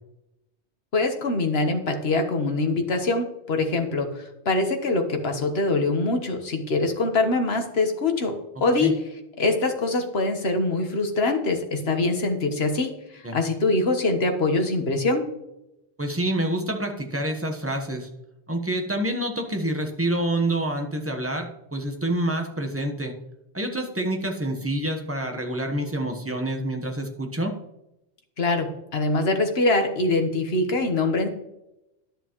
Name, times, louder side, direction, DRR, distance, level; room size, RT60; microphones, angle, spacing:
voice 1, 0.9-8.3 8.6-8.9 9.4-15.2 28.4-31.3, left 2 dB, 65° left, 5 dB, 1.5 m, -24 dB
voice 2, 16.0-18.1 18.5-23.1 23.5-27.5, right 1 dB, 15° right, 3 dB, 1.1 m, -27 dB
11.0 x 6.9 x 3.0 m, 0.88 s
omnidirectional pair, 1.1 m